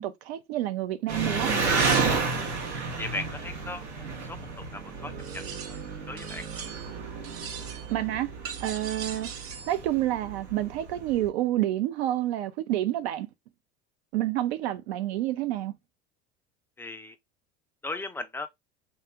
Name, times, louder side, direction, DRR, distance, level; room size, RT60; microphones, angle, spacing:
voice 1, 0.0-1.5 7.9-8.3 8.6-9.3 9.7-13.3 14.1-15.7, right 14 dB, 70° right, 0.6 m, -28 dB
Engine, 1.1-11.3, right 4 dB, 90° right, 0.9 m, -31 dB
voice 2, 3.0-3.8 4.3-4.4 4.7-5.4 5.7-5.8 6.1-6.4 16.8-17.1 17.8-18.5, left 2 dB, 5° left, 0.3 m, -36 dB
sound 1, 5.2-5.9 6.2-7.0 7.2-8.0 8.4-9.8, right 7 dB, 45° right, 0.8 m, -41 dB
2.8 x 2.4 x 3.3 m
hypercardioid pair, 80°, 32 cm